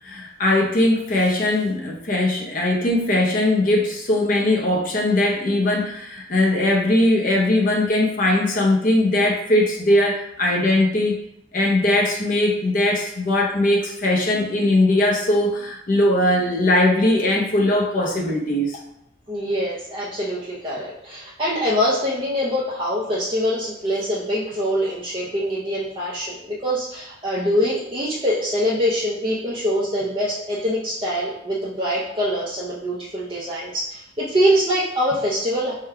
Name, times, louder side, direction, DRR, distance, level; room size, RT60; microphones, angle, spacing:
voice 1, 0.0-11.2 11.5-18.8, left 1 dB, 40° left, -2 dB, 0.6 m, -20 dB
voice 2, 19.3-35.7, equal, 25° right, -7 dB, 0.6 m, -24 dB
3.7 x 2.2 x 4.4 m, 0.79 s
head